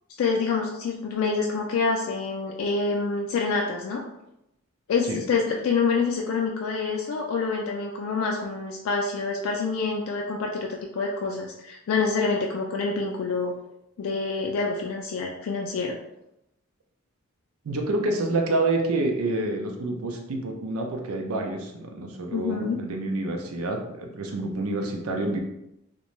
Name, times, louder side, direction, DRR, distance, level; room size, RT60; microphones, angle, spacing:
voice 1, 0.2-4.0 4.9-10.7 10.9-13.5 14.0-16.0 22.3-22.8, left 4 dB, 70° left, 0 dB, 0.3 m, -27 dB
voice 2, 17.6-25.4, right 2 dB, 80° right, 2 dB, 0.5 m, -28 dB
2.5 x 2.2 x 3.0 m, 0.85 s
head